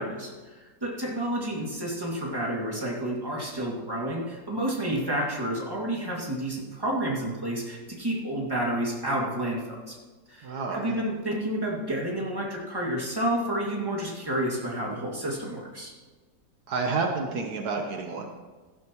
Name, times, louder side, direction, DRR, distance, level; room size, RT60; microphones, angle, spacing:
voice 1, 0.0-10.0 10.3-15.9, right 1 dB, 15° right, -3 dB, 2.3 m, -30 dB
voice 2, 10.4-11.0 16.7-18.3, right 4 dB, 70° right, 3 dB, 1.5 m, -30 dB
16.5 x 11.5 x 3.0 m, 1.3 s
omnidirectional pair, 1.8 m